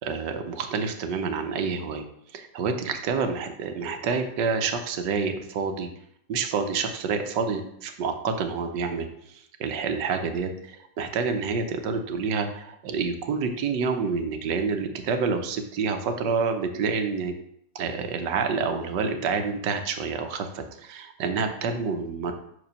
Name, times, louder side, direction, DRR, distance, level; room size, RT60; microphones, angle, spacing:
voice 1, 0.0-2.0 2.3-5.9 6.3-17.3 17.7-22.3, right 5 dB, 90° right, 6 dB, 1.5 m, -28 dB
6.0 x 4.9 x 5.3 m, 0.73 s
omnidirectional pair, 1.8 m